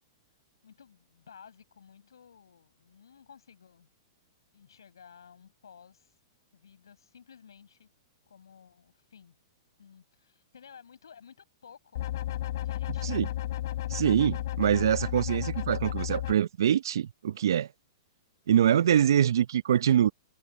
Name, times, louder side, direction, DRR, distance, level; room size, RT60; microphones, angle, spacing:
voice 1, 0.6-3.9 4.5-6.1 6.5-7.9 8.3-9.3 9.8-12.1 12.5-13.2, left 7 dB, 75° left, 6.8 m, -54 dB
sound 1, 12.0-16.3, left 14 dB, 60° left, 3.9 m, -33 dB
voice 2, 13.9-17.7 18.5-20.1, right 10 dB, 70° right, 0.7 m, -24 dB
hypercardioid pair, 115°, 2 cm